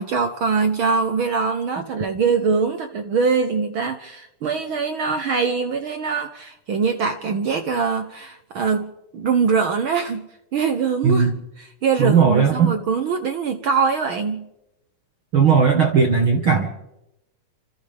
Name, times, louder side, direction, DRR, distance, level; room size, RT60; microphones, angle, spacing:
voice 1, 0.0-10.3 10.5-11.3 11.6-14.5, right 5 dB, 65° right, 7 dB, 1.3 m, -23 dB
voice 2, 12.0-12.7 15.3-16.7, right 6 dB, 50° right, 2 dB, 2.1 m, -17 dB
29.5 x 26.0 x 3.5 m, 0.91 s
omnidirectional pair, 3.6 m